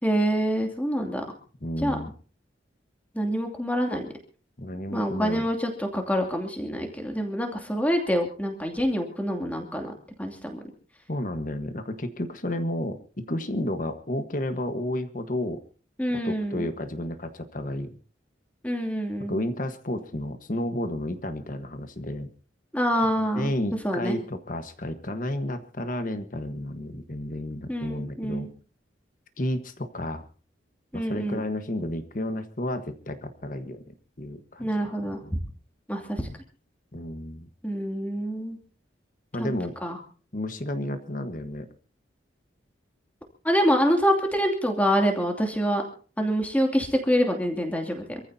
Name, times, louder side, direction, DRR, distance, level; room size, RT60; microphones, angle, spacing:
voice 1, 0.0-1.2 1.8-2.0 3.1-4.1 4.9-9.9 10.2-10.6 16.0-16.7 18.6-19.4 22.7-23.5 23.8-24.2 27.7-28.5 30.9-31.4 34.6-35.2 35.9-36.3 37.6-38.6 39.4-39.5 39.8-40.0 43.4-45.8 46.2-48.2, equal, 10° left, 3 dB, 2.7 m, -26 dB
voice 2, 1.6-2.1 4.6-5.4 11.1-15.6 16.2-17.9 19.3-22.3 23.3-28.5 29.4-30.2 30.9-34.7 35.2-35.4 36.9-37.5 39.3-39.7 40.3-41.7, left 1 dB, 45° left, 9 dB, 1.3 m, -31 dB
26.5 x 14.5 x 2.8 m, 0.38 s
head